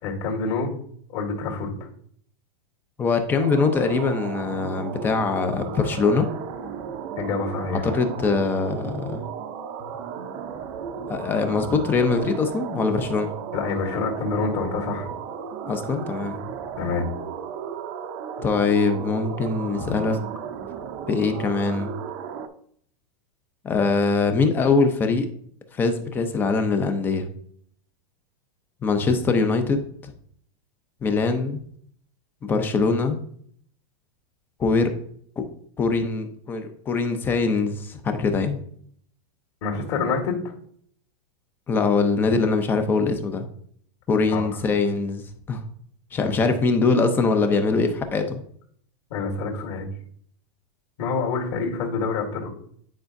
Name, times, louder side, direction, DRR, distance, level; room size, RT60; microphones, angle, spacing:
voice 1, 0.0-0.7 1.1-1.9 7.2-7.9 13.5-15.1 16.8-17.0 29.0-29.2 39.6-40.5 44.3-44.6 46.2-46.5 49.1-49.9 51.0-52.5, left 4 dB, 50° left, 0 dB, 1.9 m, -27 dB
voice 2, 3.0-6.3 7.8-9.2 11.1-13.3 15.7-16.4 18.4-20.2 21.1-21.9 23.6-25.3 25.7-27.3 28.8-30.1 31.0-31.6 32.4-33.2 34.6-34.9 35.4-35.5 35.8-38.6 41.7-43.5 44.1-45.2 45.5-45.6 46.1-48.4, left 4 dB, 10° left, 7 dB, 0.4 m, -22 dB
sound 1, 3.4-22.5, right 7 dB, 35° right, 0.6 m, -35 dB
9.5 x 4.8 x 2.6 m, 0.62 s
supercardioid pair, 170°, 19 cm